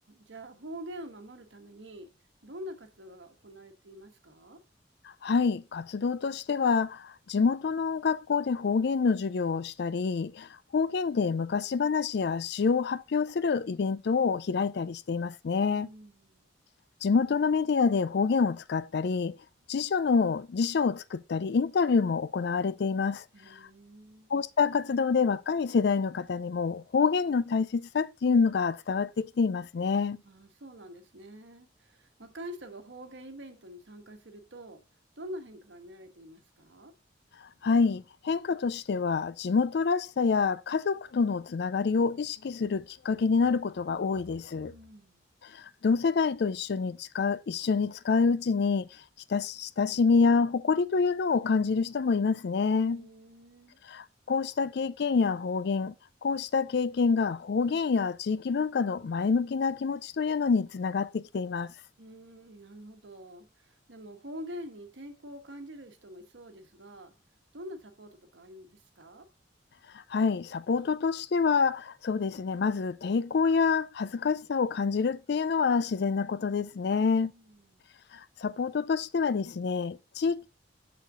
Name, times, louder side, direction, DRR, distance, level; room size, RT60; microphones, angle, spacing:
voice 1, 0.1-2.1 2.4-4.6 15.7-16.5 23.3-24.3 30.2-34.8 35.2-36.9 44.7-45.2 52.8-53.8 62.0-67.1 67.5-69.3 76.9-77.9, equal, 75° right, 1.3 m, -46 dB
voice 2, 5.2-15.9 17.0-19.4 19.7-23.2 23.5-23.6 24.3-30.2 37.6-44.7 45.5-48.9 49.3-53.1 53.9-55.9 56.2-61.7 70.1-77.3 78.4-80.5, left 5 dB, 60° left, 0.4 m, -27 dB
6.5 x 6.5 x 3.7 m
head